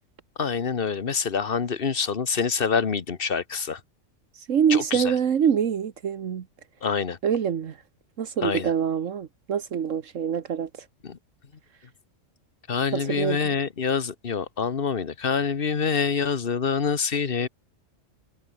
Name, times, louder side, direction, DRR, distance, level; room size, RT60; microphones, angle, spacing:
voice 1, 0.4-3.8 4.7-5.1 6.8-7.2 8.4-8.7 11.0-11.2 12.7-17.5, left 6 dB, 50° left, 1.4 m, -26 dB
voice 2, 4.3-6.5 7.2-7.8 8.2-10.9 12.9-13.5, right 8 dB, 80° right, 1.5 m, -25 dB
omnidirectional pair, 1.3 m